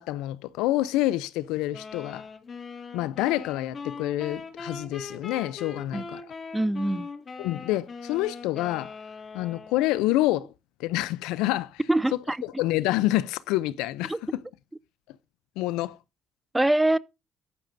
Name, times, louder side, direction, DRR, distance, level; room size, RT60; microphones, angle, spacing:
voice 1, 0.0-2.3 2.9-6.2 7.4-8.9 9.3-10.5 10.8-11.8 12.4-14.2 15.6-16.0, left 16 dB, 90° left, 0.5 m, -27 dB
sound 1, 1.7-10.1, left 4 dB, 45° left, 2.1 m, -41 dB
voice 2, 6.5-7.1 11.9-12.4 14.1-14.2 16.5-17.0, right 1 dB, 10° right, 0.5 m, -23 dB
14.0 x 11.0 x 2.6 m
supercardioid pair, 80°, 0 cm